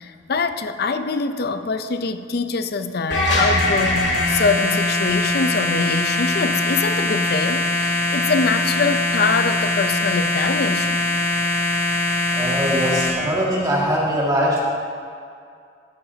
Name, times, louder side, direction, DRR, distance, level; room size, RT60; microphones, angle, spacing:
voice 1, 0.0-11.0, left 4 dB, 60° left, 9 dB, 0.6 m, -24 dB
sound 1, 3.1-13.1, left 2 dB, 75° left, 2.4 m, -21 dB
voice 2, 12.3-14.6, equal, 20° right, -5 dB, 2.0 m, -21 dB
15.5 x 11.0 x 2.8 m, 2.3 s
head